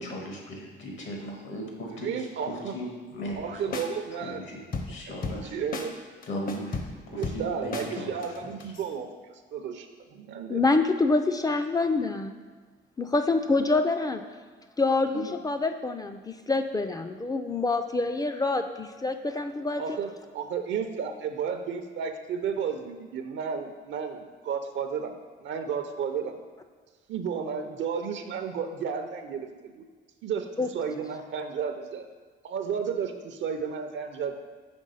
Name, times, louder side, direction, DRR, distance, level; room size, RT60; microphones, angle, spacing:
voice 1, 0.0-3.8 4.1-5.6 6.3-8.1 8.4-8.7, equal, 75° left, 0 dB, 1.4 m, -38 dB
voice 2, 2.0-2.7 3.4-4.4 5.3-6.0 7.1-10.6 15.1-15.3 19.8-26.4 27.1-29.8 30.2-32.1 32.4-34.4, right 6 dB, 70° right, 7 dB, 0.5 m, -33 dB
sound 1, 3.3-3.5 3.7-3.9 4.7-5.5 5.7-5.9 6.2-7.9 8.2-8.9, left 3 dB, 45° left, 0.7 m, -34 dB
voice 3, 10.5-12.3 13.0-14.2 14.8-20.0 30.6-30.7, left 3 dB, 20° left, 6 dB, 0.3 m, -26 dB
5.2 x 3.4 x 5.4 m, 1.5 s
cardioid pair, 90°, 20 cm